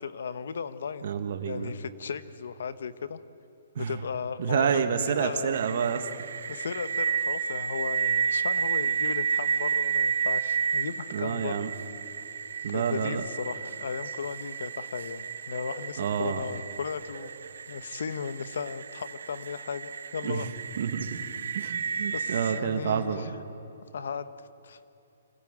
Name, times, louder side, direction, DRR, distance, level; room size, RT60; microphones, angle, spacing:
voice 1, 0.0-1.1 1.4-3.2 3.8-5.6 6.5-11.7 12.7-17.3 17.7-20.5 22.1-23.3 23.9-24.3 24.6-24.8, left 6 dB, 70° left, 13 dB, 1.1 m, -36 dB
voice 2, 1.0-1.7 3.7-3.9 4.4-6.1 11.1-11.7 12.6-13.2 16.0-16.4 20.2-20.5 20.8-21.2 21.5-23.3, right 7 dB, 50° right, 6 dB, 1.5 m, -28 dB
sound 1, 5.5-22.6, right 6 dB, 75° right, 1.2 m, -32 dB
25.5 x 15.5 x 8.9 m, 2.8 s
hypercardioid pair, 170°, 0 cm